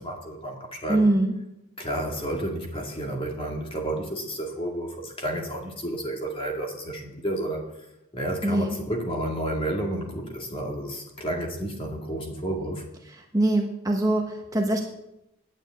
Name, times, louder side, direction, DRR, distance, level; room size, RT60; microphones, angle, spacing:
voice 1, 0.0-1.1 1.8-7.7 8.1-12.9, right 1 dB, 25° left, 0 dB, 2.2 m, -31 dB
voice 2, 0.9-1.3 8.4-8.8 13.3-14.8, right 1 dB, 15° right, 1 dB, 1.2 m, -23 dB
9.8 x 9.0 x 8.9 m, 0.88 s
head